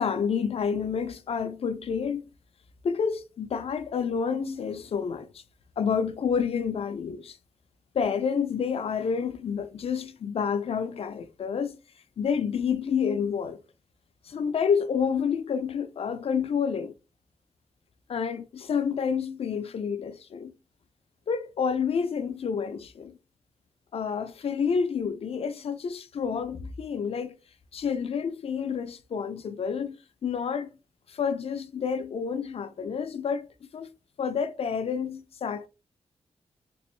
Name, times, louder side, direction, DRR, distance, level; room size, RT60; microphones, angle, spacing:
voice 1, 0.0-2.3 2.8-5.4 5.8-7.4 7.9-11.8 12.2-13.6 14.2-16.9 18.1-20.5 21.3-23.2 23.9-27.4 27.7-30.0 30.2-30.7 31.1-33.5 33.7-33.9 34.2-35.7, left 6 dB, 60° left, 0.5 m, -29 dB
3.4 x 3.0 x 3.0 m
wide cardioid pair, 100°, 11 cm